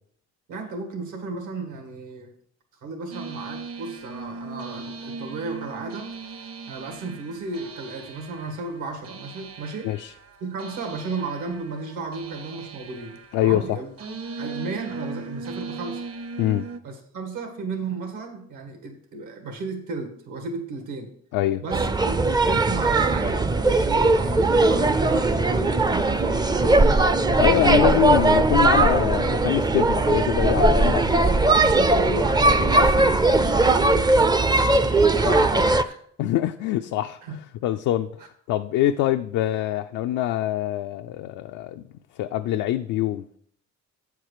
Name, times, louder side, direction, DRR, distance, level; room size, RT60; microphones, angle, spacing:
voice 1, 0.5-2.3 2.8-9.9 10.4-13.9 14.4-16.0 16.8-21.1 21.6-27.2 27.7-27.9 31.0-36.0 37.2-37.4, right 3 dB, 80° right, 1.9 m, -34 dB
sound 1, 3.1-16.8, right 4 dB, 50° right, 0.9 m, -38 dB
voice 2, 13.3-13.8 16.4-16.7 21.3-21.6 27.4-31.7 35.2-35.3 36.2-37.4 37.6-38.1 38.5-41.8 42.2-43.4, left 13 dB, 85° left, 0.5 m, -24 dB
sound 2, 21.7-35.8, right 2 dB, 15° right, 0.4 m, -19 dB
8.5 x 4.6 x 6.6 m
cardioid pair, 90°, 30 cm